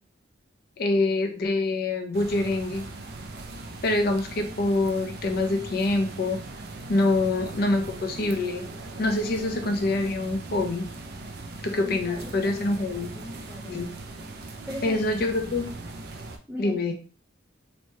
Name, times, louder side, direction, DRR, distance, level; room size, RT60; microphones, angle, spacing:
voice 1, 0.8-2.9 3.8-6.4 6.9-8.6 9.0-10.9 11.6-13.1 13.7-13.9 14.8-15.7 16.6-16.9, left 2 dB, 50° left, 4 dB, 0.5 m, -25 dB
sound 1, 2.1-16.4, right 2 dB, 55° right, 0.4 m, -40 dB
voice 2, 11.8-13.8 14.7-15.0 16.5-16.7, left 1 dB, 10° right, -6 dB, 0.6 m, -40 dB
3.1 x 2.1 x 2.7 m, 0.38 s
head